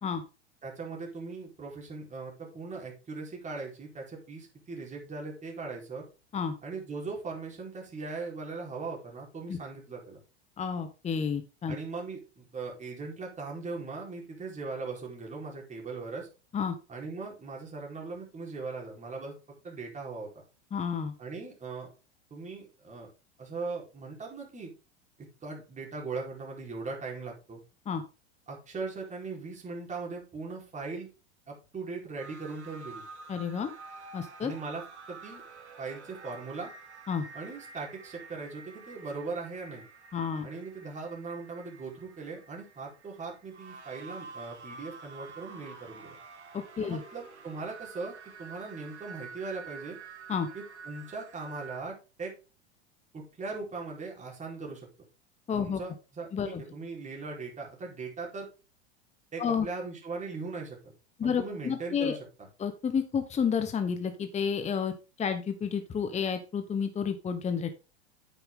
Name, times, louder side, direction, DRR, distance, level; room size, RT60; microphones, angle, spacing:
voice 1, 0.6-6.0 6.6-10.2 11.7-16.3 16.9-19.3 19.6-20.3 21.2-21.9 22.3-23.1 23.4-24.7 25.4-27.6 28.5-31.1 31.5-33.1 34.4-35.4 35.8-36.7 37.3-39.8 40.4-46.2 46.8-50.0 50.5-52.3 53.1-54.9 55.6-58.5 59.3-60.8 61.2-62.2, right 4 dB, 20° right, -1 dB, 4.4 m, -39 dB
voice 2, 10.6-11.8 16.5-16.8 20.7-21.1 27.9-28.0 33.3-33.7 34.1-34.5 37.1-37.2 40.1-40.5 46.5-47.0 50.3-50.5 55.5-55.8 56.3-56.6 59.4-59.7 61.2-62.2 62.6-67.7, left 6 dB, 20° left, 8 dB, 1.1 m, -30 dB
sound 1, 32.2-51.8, right 4 dB, 90° right, 1.8 m, -48 dB
9.1 x 7.0 x 3.8 m, 0.32 s
hypercardioid pair, 95°, 33 cm